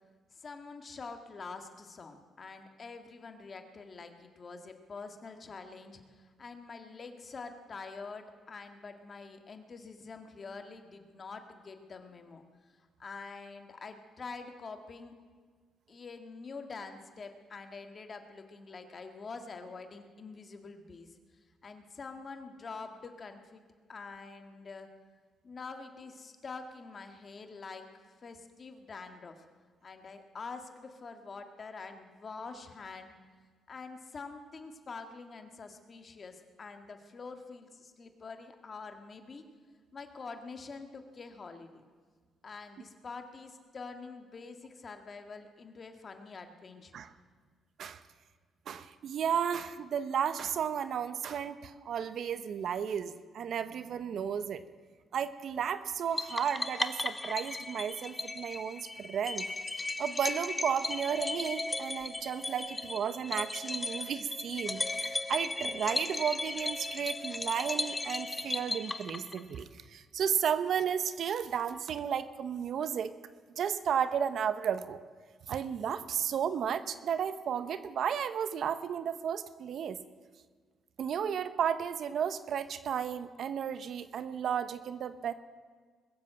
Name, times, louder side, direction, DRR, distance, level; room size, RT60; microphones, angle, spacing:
voice 1, 0.3-12.4 13.0-15.1 15.9-21.2 21.6-23.6 23.9-24.9 25.4-29.4 29.8-33.1 33.7-39.5 39.9-41.8 42.4-47.0, left 4 dB, 40° left, 6 dB, 1.7 m, -46 dB
voice 2, 48.7-54.6 55.1-59.5 60.0-73.1 73.6-75.0 75.5-80.0 81.0-85.3, right 8 dB, 65° right, 13 dB, 0.8 m, -33 dB
sound 1, 56.2-69.6, left 2 dB, 20° left, 0.8 m, -36 dB
21.5 x 7.6 x 7.7 m, 1.6 s
cardioid pair, 90°, 0 cm